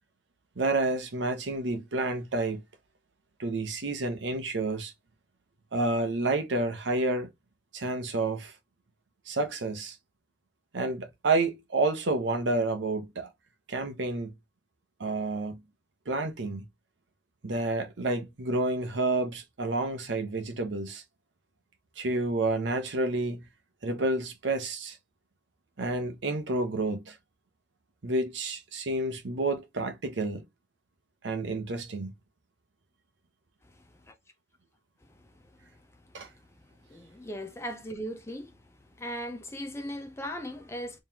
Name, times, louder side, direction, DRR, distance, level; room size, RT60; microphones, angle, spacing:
voice 1, 0.6-2.6 3.4-4.9 5.7-7.3 7.7-8.5 9.3-10.0 10.7-13.3 13.7-14.3 15.0-15.6 16.1-16.6 17.4-21.0 22.0-23.5 23.8-25.0 25.8-27.2 28.0-30.4 31.2-32.1 36.1-36.3, right 2 dB, 85° right, 0.8 m, -29 dB
voice 2, 36.9-38.5 39.0-41.0, equal, 15° left, 0.5 m, -37 dB
3.7 x 3.1 x 2.8 m
head